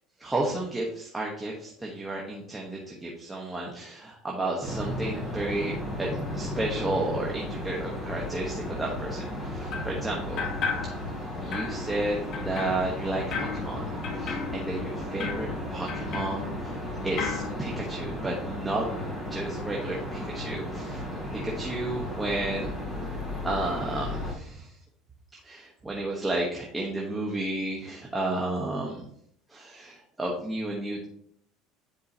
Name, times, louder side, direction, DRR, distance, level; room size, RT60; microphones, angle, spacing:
voice 1, 0.2-10.5 11.4-12.2 12.4-13.9 14.2-16.8 17.0-18.9 19.3-21.1 21.4-22.7 23.4-24.7 25.4-29.1 29.5-31.0, right 2 dB, 10° right, -2 dB, 1.1 m, -32 dB
sound 1, 4.6-24.3, left 1 dB, 5° left, 3.0 m, -34 dB
sound 2, 9.7-10.0 10.4-11.2 11.5-16.9 17.2-17.5, left 6 dB, 45° left, 1.1 m, -35 dB
9.8 x 4.7 x 2.8 m, 0.67 s
cardioid pair, 145°, 0 cm